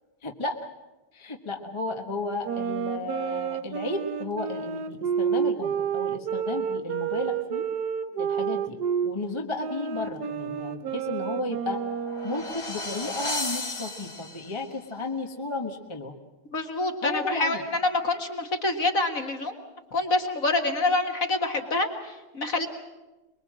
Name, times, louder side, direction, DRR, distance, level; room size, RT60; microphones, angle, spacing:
voice 1, 0.2-0.6 1.1-7.7 8.2-8.8 9.0-11.8 12.2-16.1 17.0-17.6, left 2 dB, 15° left, 3 dB, 1.2 m, -33 dB
sound 1, 2.4-9.1 9.6-12.6, right 7 dB, 60° right, 1.3 m, -30 dB
sound 2, 11.7-14.7, left 2 dB, 70° left, 3.6 m, -34 dB
voice 2, 16.5-19.5 19.9-22.7, left 2 dB, 40° left, 4 dB, 2.2 m, -26 dB
24.0 x 22.0 x 7.6 m, 1.1 s
omnidirectional pair, 2.2 m